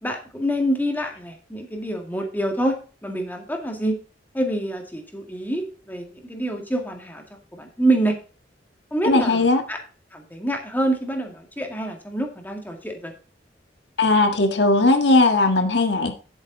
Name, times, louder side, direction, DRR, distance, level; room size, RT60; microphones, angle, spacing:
voice 1, 0.0-4.0 4.3-8.2 8.9-9.4 9.7-9.8 10.1-13.1, right 1 dB, 10° left, 3 dB, 1.9 m, -26 dB
voice 2, 9.0-9.6 14.0-16.1, left 2 dB, 70° left, 6 dB, 1.6 m, -18 dB
10.5 x 8.2 x 3.9 m, 0.36 s
head